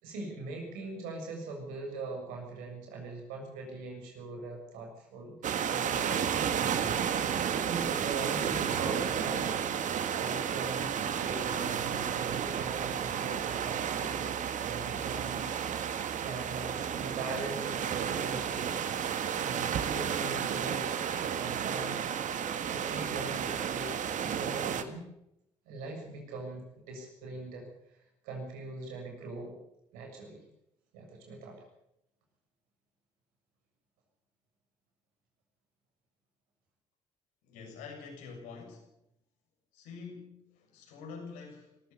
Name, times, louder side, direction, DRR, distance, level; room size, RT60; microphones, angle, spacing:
voice 1, 0.0-5.3 5.7-6.3 6.9-9.6 10.2-15.5 16.0-18.8 19.4-22.0 22.7-25.1 25.7-29.6 29.9-30.4 30.9-31.6, right 3 dB, 80° right, 2 dB, 7.1 m, -41 dB
sound 1, 5.4-24.8, right 8 dB, 60° right, 1.8 m, -32 dB
voice 2, 37.4-38.9 39.7-41.9, left 5 dB, 80° left, 1 dB, 7.3 m, -46 dB
22.0 x 15.0 x 8.3 m, 0.82 s
hypercardioid pair, 55°, 14 cm